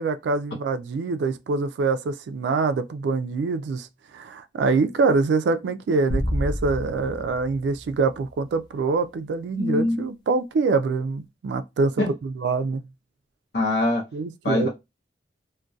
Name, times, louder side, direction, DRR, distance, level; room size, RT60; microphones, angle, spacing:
voice 1, 0.0-12.9 14.1-14.7, right 4 dB, 80° right, 0.3 m, -25 dB
sound 1, 6.1-8.6, equal, 25° left, 0.4 m, -30 dB
voice 2, 9.6-10.1 12.0-12.1 13.5-14.0 14.4-14.7, left 2 dB, 65° left, 0.7 m, -23 dB
2.6 x 2.1 x 2.3 m
head